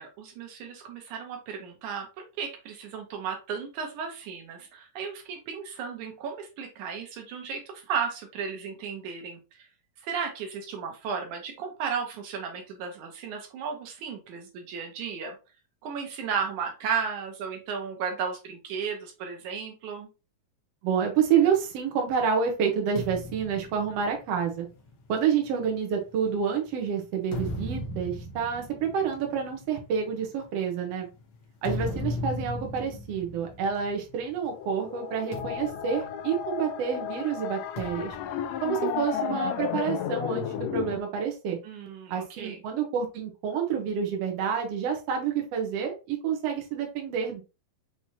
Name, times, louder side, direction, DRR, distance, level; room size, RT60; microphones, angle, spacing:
voice 1, 0.0-2.1 2.4-9.7 10.0-15.4 15.8-20.1 41.6-42.6, right 6 dB, 80° right, 3 dB, 2.5 m, -34 dB
voice 2, 20.8-24.7 25.1-31.1 31.6-38.2 38.6-41.6 42.1-47.4, right 7 dB, 65° right, 2 dB, 1.9 m, -28 dB
sound 1, 22.9-26.5 27.1-34.5 34.7-35.0 35.3-36.9 37.8-39.5, left 2 dB, 65° left, 1.2 m, -38 dB
sound 2, 34.5-41.0, left 10 dB, 80° left, 1.6 m, -33 dB
5.9 x 3.2 x 2.8 m, 0.30 s
omnidirectional pair, 3.4 m